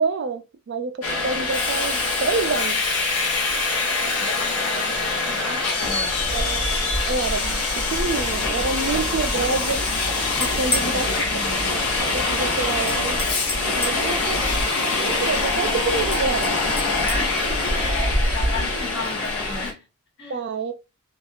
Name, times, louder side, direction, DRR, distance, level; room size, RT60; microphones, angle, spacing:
voice 1, 0.0-2.8 6.3-6.7 7.1-9.9 10.4-11.1 11.6-13.2 13.7-14.4 14.8-16.5 20.3-20.7, right 4 dB, 50° right, 0.4 m, -27 dB
Subway metro underground, 1.0-19.7, left 3 dB, 85° left, 0.9 m, -24 dB
voice 2, 4.2-6.3 10.7-11.8 16.9-19.8 20.2-20.4, left 3 dB, 55° left, 1.2 m, -34 dB
sound 1, 10.4-11.0 12.9-14.1 16.1-17.2, left 2 dB, 10° left, 0.4 m, -30 dB
2.9 x 2.4 x 2.3 m
head